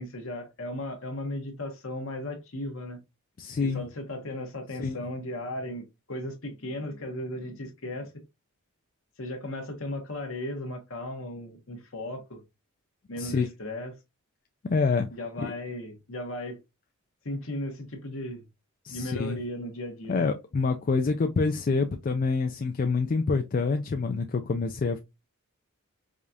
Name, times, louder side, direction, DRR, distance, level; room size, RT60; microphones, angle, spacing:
voice 1, 0.0-3.0 3.6-8.1 9.2-12.4 13.1-13.9 15.1-16.6 17.2-18.4 18.9-20.2, left 1 dB, 60° left, 1.1 m, -36 dB
voice 2, 3.4-3.8 4.8-5.0 13.2-13.5 14.6-15.1 15.4-15.5 18.8-19.4 20.1-25.0, left 4 dB, 40° left, 0.3 m, -27 dB
4.9 x 2.4 x 2.6 m
head